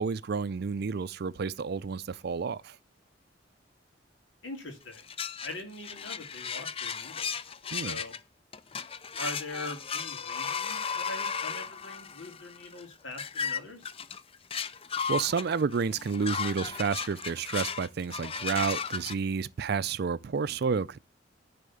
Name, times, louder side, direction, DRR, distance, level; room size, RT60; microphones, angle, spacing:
voice 1, 0.0-2.8 7.7-8.0 15.1-21.0, right 5 dB, 55° right, 0.4 m, -30 dB
voice 2, 4.4-5.0 5.4-7.4 7.8-8.1 9.2-13.9, left 2 dB, 80° left, 2.9 m, -42 dB
sound 1, 4.9-8.2 8.5-19.1, left 6 dB, 30° left, 0.5 m, -35 dB
10.0 x 4.3 x 7.1 m
head